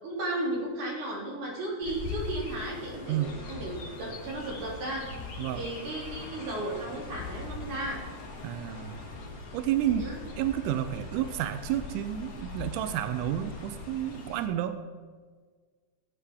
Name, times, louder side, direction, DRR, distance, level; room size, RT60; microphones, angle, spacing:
voice 1, 0.0-5.0 5.5-8.0 10.0-10.2, right 1 dB, 55° right, -5 dB, 4.4 m, -34 dB
Chirp tweet, 1.8-14.5, left 3 dB, 50° left, 2.7 m, -41 dB
voice 2, 8.4-9.0 9.5-10.1 10.4-14.8, right 11 dB, 85° right, 10 dB, 1.8 m, -30 dB
18.0 x 9.1 x 3.7 m, 1.5 s
omnidirectional pair, 4.3 m